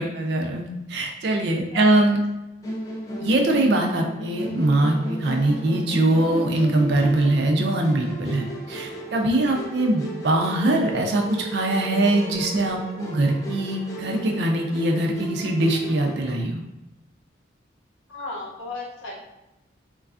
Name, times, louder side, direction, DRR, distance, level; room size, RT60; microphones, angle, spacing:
voice 1, 0.0-2.2 3.2-11.2 11.5-16.6, right 1 dB, 60° right, 2 dB, 0.4 m, -22 dB
Musical instrument, 2.6-16.4, equal, 20° left, 0.3 m, -35 dB
voice 2, 18.1-19.2, left 3 dB, 85° left, -2 dB, 0.7 m, -35 dB
3.1 x 2.3 x 2.4 m, 0.93 s
head